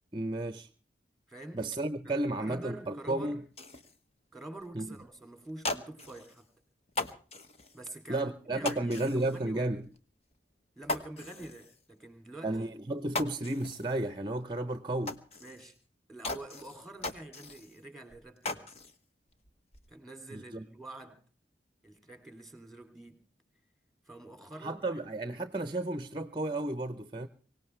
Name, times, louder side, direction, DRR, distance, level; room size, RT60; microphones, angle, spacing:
voice 1, 0.1-0.7 1.5-3.5 4.7-5.0 8.1-9.9 12.4-15.2 20.3-20.6 24.6-27.3, right 2 dB, 25° right, 0.8 m, -33 dB
voice 2, 1.3-1.6 2.0-3.4 4.3-6.5 7.7-9.8 10.8-12.7 15.4-15.8 16.1-18.7 19.9-21.2 21.8-23.2 24.0-25.1, right 2 dB, ahead, 2.9 m, -47 dB
sound 1, 3.5-4.0 4.6-4.7 5.0-5.1 5.5-6.4 6.9-7.8 8.6-9.4 9.8-10.0 10.3-10.4 10.8-11.8 12.5-12.6 12.9-14.0 14.3-14.4 15.1-15.8 16.2-17.8 18.1-19.0 19.3-19.9, left 2 dB, 35° left, 1.2 m, -39 dB
24.5 x 18.0 x 3.3 m
head